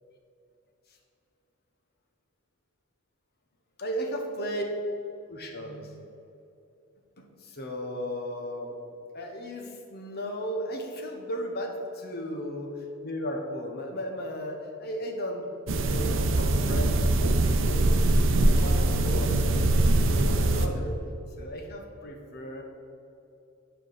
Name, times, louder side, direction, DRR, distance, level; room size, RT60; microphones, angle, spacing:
voice 1, 3.8-4.6 5.3-6.1 7.2-8.8 9.1-15.5 15.8-17.9 18.4-21.0 21.4-22.6, equal, 50° left, 2 dB, 1.1 m, -35 dB
sound 1, 15.7-20.7, right 2 dB, 65° right, 0.6 m, -23 dB
8.0 x 5.0 x 5.7 m, 2.7 s
head